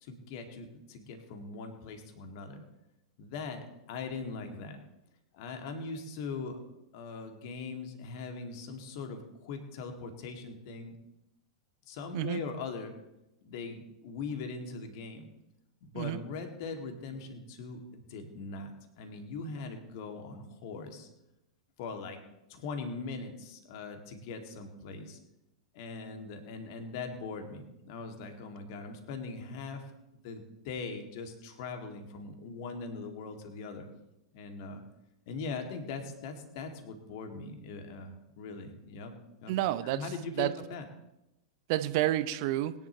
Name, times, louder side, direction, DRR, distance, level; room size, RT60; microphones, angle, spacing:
voice 1, 0.0-2.6 3.2-4.8 5.3-6.6 6.9-10.9 11.9-12.9 13.4-15.3 15.8-21.1 21.8-22.2 22.5-25.2 25.7-29.9 30.2-33.9 34.3-34.8 35.3-39.1 39.4-39.6 39.8-40.8, left 4 dB, 45° left, 5 dB, 2.2 m, -41 dB
voice 2, 39.5-40.1 40.4-40.5 41.7-42.7, right 14 dB, 45° right, 13 dB, 0.7 m, -29 dB
21.5 x 10.5 x 3.0 m, 0.90 s
figure-of-eight pair, 95°, 3 cm